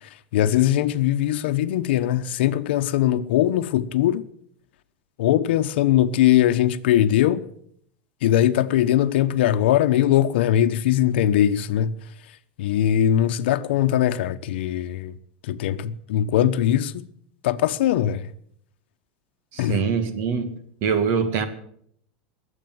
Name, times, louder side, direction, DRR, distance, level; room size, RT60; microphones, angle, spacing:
voice 1, 0.0-4.3 5.2-7.5 8.2-11.9 12.6-15.1 15.4-17.0 17.4-18.3 19.6-19.8, left 11 dB, 75° left, 1.0 m, -21 dB
voice 2, 19.5-20.5 20.8-21.5, right 6 dB, 45° right, 2.0 m, -23 dB
21.5 x 8.4 x 7.8 m
supercardioid pair, 155°, 6 cm